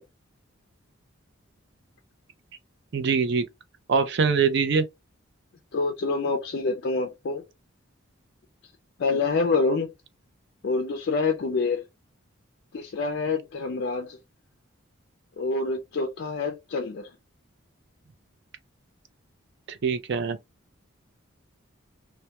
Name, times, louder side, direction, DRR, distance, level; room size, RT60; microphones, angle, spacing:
voice 1, 2.9-3.4 3.9-4.8 19.7-20.4, right 5 dB, 55° right, 0.4 m, -23 dB
voice 2, 5.7-7.4 9.0-9.9 10.6-11.8 12.7-14.2 15.4-17.1, left 3 dB, 55° left, 0.4 m, -26 dB
2.1 x 2.1 x 2.8 m
head